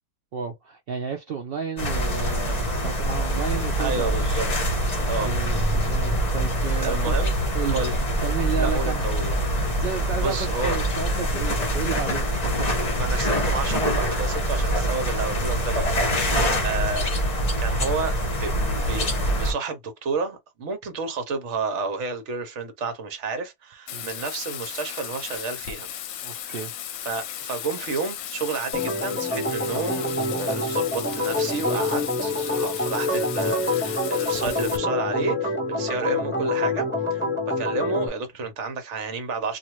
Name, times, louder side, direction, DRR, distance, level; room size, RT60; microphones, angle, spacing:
voice 1, 0.3-4.3 5.0-7.2 7.5-9.0 9.8-12.8 16.3-16.6 23.9-24.1 26.2-26.7, right 6 dB, 85° right, 0.5 m, -32 dB
sound 1, 1.8-19.5, equal, 35° left, 0.8 m, -24 dB
voice 2, 3.8-4.5 5.0-5.3 6.8-7.4 7.7-7.9 8.6-9.4 9.9-10.8 12.9-17.1 17.6-25.9 26.4-26.6 27.0-39.6, right 4 dB, 55° right, 1.1 m, -31 dB
Bathtub (filling or washing), 23.9-34.8, left 10 dB, 70° left, 0.9 m, -35 dB
Organ, 28.7-38.1, left 2 dB, 10° left, 1.1 m, -26 dB
2.5 x 2.5 x 3.0 m
omnidirectional pair, 1.5 m